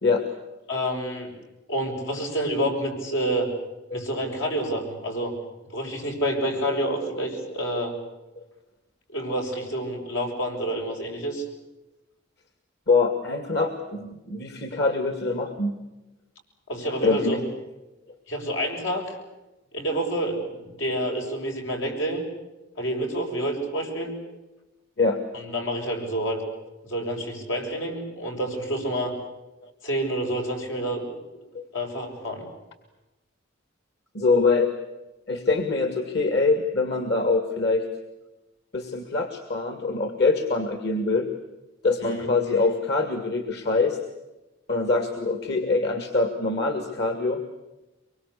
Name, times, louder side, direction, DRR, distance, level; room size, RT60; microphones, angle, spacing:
voice 1, 0.7-1.3 1.7-3.5 3.9-5.3 5.7-7.9 9.1-11.4 16.7-17.4 18.3-19.0 19.7-22.2 22.8-24.1 25.3-26.4 26.8-29.1 29.8-31.1 31.7-32.5 42.0-42.3, right 1 dB, 85° left, 2 dB, 7.1 m, -28 dB
voice 2, 12.9-15.7 17.0-17.4 25.0-25.2 29.6-29.7 31.5-31.6 34.1-34.7 35.3-37.9 38.7-41.3 41.8-44.0 44.7-47.4, left 3 dB, 60° left, 7 dB, 2.2 m, -24 dB
24.5 x 23.5 x 8.4 m, 1.0 s
head